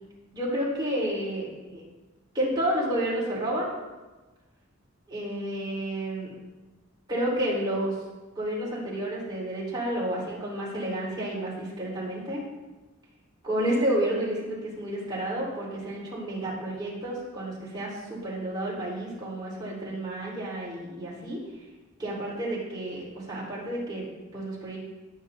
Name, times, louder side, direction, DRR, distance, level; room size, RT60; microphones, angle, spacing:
voice 1, 0.3-1.8 2.3-3.7 5.1-6.3 7.1-8.0 8.4-12.4 13.4-21.4 22.0-24.8, right 1 dB, 20° right, -7 dB, 4.4 m, -30 dB
19.5 x 9.0 x 2.8 m, 1.2 s
head